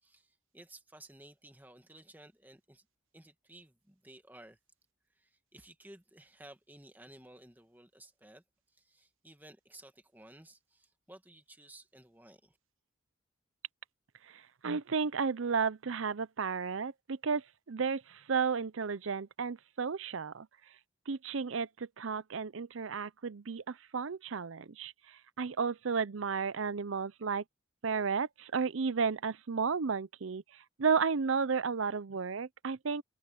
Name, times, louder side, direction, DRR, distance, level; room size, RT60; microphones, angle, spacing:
voice 1, 0.0-2.8 3.1-4.6 5.1-12.6, right 1 dB, 10° right, 1.8 m, -56 dB
voice 2, 14.3-20.5 21.1-27.4 27.8-33.0, right 5 dB, 80° right, 0.6 m, -33 dB
head